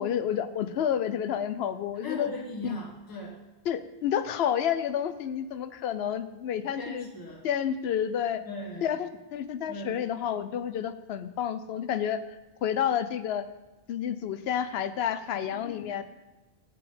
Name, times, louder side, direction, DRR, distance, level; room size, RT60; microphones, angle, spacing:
voice 1, 0.0-2.3 2.6-2.8 3.7-7.1 7.4-8.4 8.8-12.2 12.6-13.5 13.9-16.0, left 9 dB, 80° left, 12 dB, 0.8 m, -30 dB
voice 2, 2.0-3.3 6.7-7.4 8.4-8.9 9.7-10.0 15.3-16.0, left 2 dB, 20° left, -2 dB, 1.2 m, -39 dB
6.9 x 4.9 x 6.8 m, 1.1 s
omnidirectional pair, 1.1 m